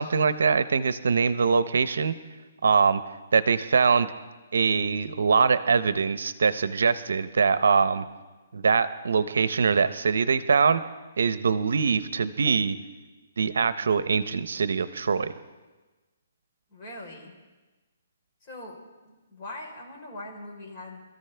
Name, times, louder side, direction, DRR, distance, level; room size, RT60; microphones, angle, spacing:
voice 1, 0.0-2.1 2.6-3.0 3.3-4.1 4.5-8.0 8.5-10.8 11.2-12.8 13.4-15.3, right 5 dB, 80° right, 14 dB, 0.7 m, -23 dB
voice 2, 16.7-17.3 18.4-21.0, left 1 dB, 25° left, -2 dB, 3.9 m, -42 dB
25.5 x 14.0 x 3.4 m, 1.2 s
hypercardioid pair, 160°, 0 cm